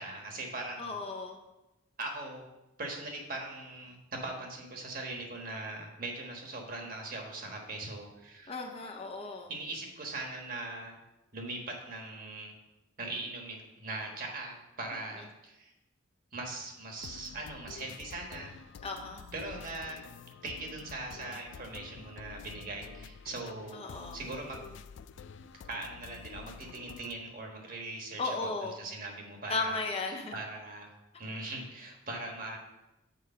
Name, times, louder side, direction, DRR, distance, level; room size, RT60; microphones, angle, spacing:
voice 1, 0.0-1.0 2.0-2.4 2.8-8.6 9.5-11.0 11.3-12.5 13.0-15.7 16.3-18.5 19.3-20.0 20.4-23.8 24.1-24.7 25.7-29.8 30.3-30.9 31.2-32.6, right 2 dB, 45° right, 1 dB, 1.3 m, -40 dB
voice 2, 0.8-1.4 8.5-9.5 18.8-19.2 23.7-24.2 28.2-28.7 29.5-30.3, left 3 dB, 30° left, 3 dB, 0.7 m, -35 dB
sound 1, 17.0-27.1, left 6 dB, 65° left, 0.3 m, -49 dB
6.7 x 4.8 x 5.5 m, 0.97 s
head